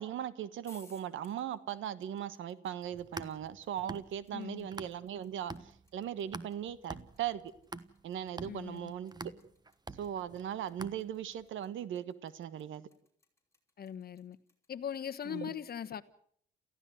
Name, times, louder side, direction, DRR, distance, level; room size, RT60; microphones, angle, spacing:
voice 1, 0.0-5.5 5.9-7.4 8.0-9.1 10.0-12.9 15.3-15.5, right 10 dB, 75° right, 1.3 m, -38 dB
sound 1, 0.6-14.7, left 3 dB, 15° left, 5.2 m, -64 dB
sound 2, 2.8-5.2 5.5-11.4, right 3 dB, 20° right, 1.3 m, -46 dB
voice 2, 4.3-4.7 8.5-8.9 13.8-14.4 14.7-16.0, left 9 dB, 50° left, 1.3 m, -40 dB
28.5 x 15.0 x 7.9 m
cardioid pair, 90°, 20 cm